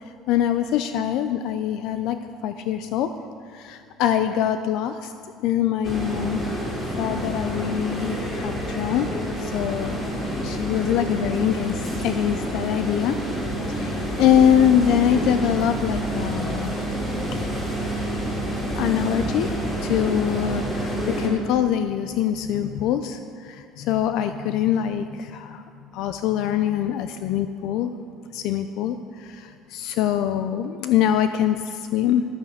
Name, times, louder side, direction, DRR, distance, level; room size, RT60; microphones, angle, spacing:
voice 1, 0.3-3.1 3.5-5.1 5.4-6.4 7.0-9.1 9.4-10.0 10.4-13.2 13.7-16.8 17.3-17.4 18.8-19.5 19.8-25.6 25.9-27.9 28.3-32.3, left 10 dB, 65° left, 9 dB, 0.5 m, -24 dB
sound 1, 5.8-21.3, right 1 dB, 20° left, 3.3 m, -28 dB
12.0 x 9.1 x 6.7 m, 2.5 s
cardioid pair, 130°, 0 cm